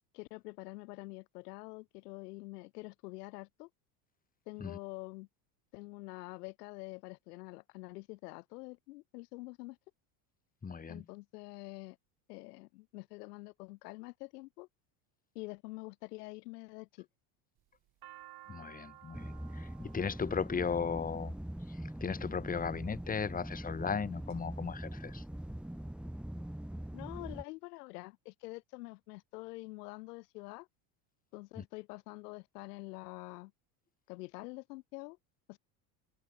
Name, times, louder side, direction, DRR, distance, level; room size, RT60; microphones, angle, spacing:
voice 1, 0.1-3.7 4.5-5.3 5.7-9.8 10.9-12.0 12.3-14.7 15.3-17.1 26.9-30.7 31.3-33.5 34.1-35.2 35.5-35.6, left 22 dB, 90° left, 1.6 m, -46 dB
voice 2, 10.6-11.0 18.5-21.3 22.0-25.2 31.6-31.7, left 6 dB, 20° left, 1.5 m, -36 dB
sound 1, 17.6-21.8 22.6-23.1 23.7-24.4 24.7-24.8 25.0-25.8, right 15 dB, 55° right, 2.8 m, -56 dB
sound 2, 19.1-27.4, right 1 dB, ahead, 1.5 m, -43 dB
supercardioid pair, 105°, 46 cm